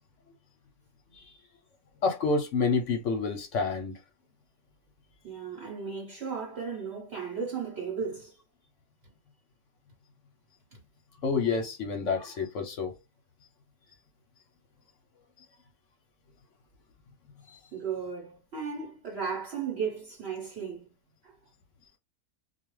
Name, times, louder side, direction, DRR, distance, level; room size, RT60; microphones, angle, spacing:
voice 1, 2.0-4.0 11.2-12.9, left 4 dB, 65° left, 0.9 m, -28 dB
voice 2, 5.2-8.3 10.7-10.8 17.7-20.9 21.2-21.4, right 6 dB, 50° right, 1.0 m, -35 dB
2.4 x 2.3 x 3.0 m
omnidirectional pair, 1.6 m